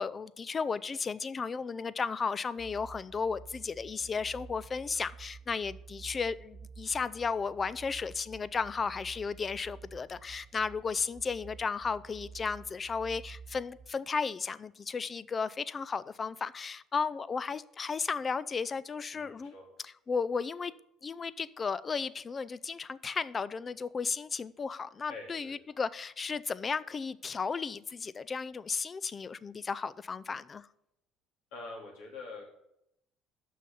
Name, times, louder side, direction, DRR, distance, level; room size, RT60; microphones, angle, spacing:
voice 1, 0.0-19.5 20.1-20.7 21.0-30.7, left 5 dB, 30° left, 0.4 m, -34 dB
sound 1, 2.6-13.9, right 5 dB, 25° right, 1.0 m, -51 dB
voice 2, 19.1-19.6 25.1-25.6 31.5-32.5, left 3 dB, 85° left, 2.8 m, -45 dB
6.3 x 5.6 x 6.8 m
supercardioid pair, 100°, 0 cm